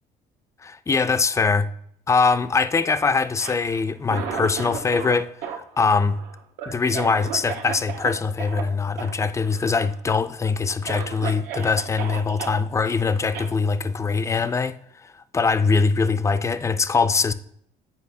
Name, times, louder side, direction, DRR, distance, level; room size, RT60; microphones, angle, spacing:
voice 1, 0.6-1.7 2.1-6.2 6.7-14.7 15.0-17.3, left 4 dB, 15° left, 0.3 m, -22 dB
Cough, 3.3-5.2 5.4-8.1 8.4-8.6 9.0-9.1 9.4-10.0 10.4-10.5 10.8-12.6 13.3-13.5, right 7 dB, 85° right, 0.9 m, -34 dB
8.3 x 4.6 x 2.7 m
cardioid pair, 110°, 17 cm